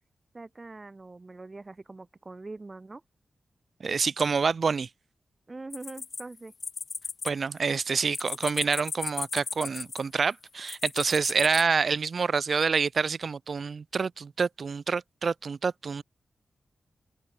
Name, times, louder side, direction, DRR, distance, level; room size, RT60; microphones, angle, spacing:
voice 1, 0.3-3.0 5.5-6.5, right 3 dB, 30° right, 3.3 m, -43 dB
voice 2, 3.8-4.9 7.2-16.0, right 5 dB, 55° right, 0.3 m, -27 dB
sound 1, 5.7-7.3 7.6-10.2 10.7-11.6, left 5 dB, 55° left, 0.5 m, -36 dB
wide cardioid pair, 115°, 0 cm